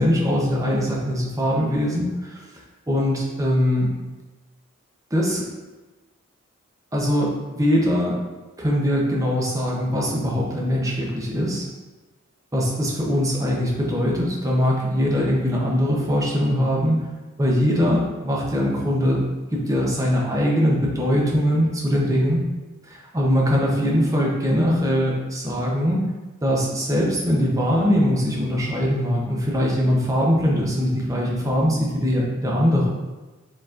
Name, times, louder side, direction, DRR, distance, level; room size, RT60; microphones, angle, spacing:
voice 1, 0.0-3.9 5.1-5.4 6.9-8.2 8.6-11.7 12.5-17.0 17.4-22.4 22.8-26.0 26.4-32.9, equal, 15° right, -3 dB, 0.7 m, -22 dB
4.6 x 3.9 x 2.4 m, 1.2 s
head